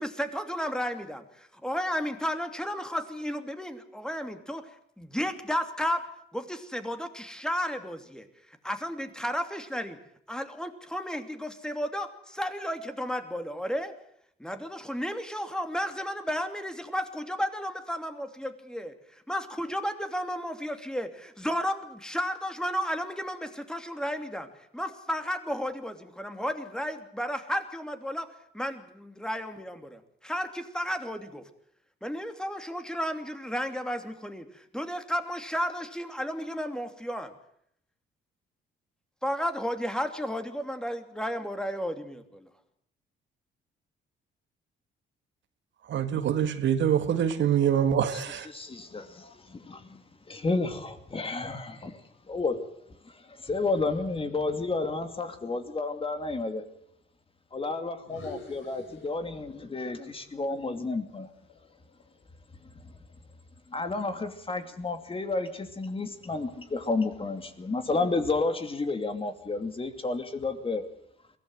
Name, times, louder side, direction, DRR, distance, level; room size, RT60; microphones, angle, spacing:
voice 1, 0.0-4.7 5.0-6.0 6.3-8.3 8.6-10.0 10.3-13.9 14.4-18.9 19.3-24.5 24.7-28.3 28.5-31.4 32.0-37.3 39.2-42.5, equal, 5° left, 2.8 m, -33 dB
voice 2, 45.8-48.5, right 9 dB, 70° right, 1.8 m, -25 dB
voice 3, 48.5-50.0 50.3-52.0 52.3-52.6 53.0-56.6 57.5-61.3 62.8-62.9 63.7-70.8, left 3 dB, 30° left, 2.6 m, -31 dB
sound 1, 58.0-59.7 60.0-62.2, left 3 dB, 75° left, 6.8 m, -49 dB
22.5 x 16.5 x 7.9 m
cardioid pair, 90°, 20 cm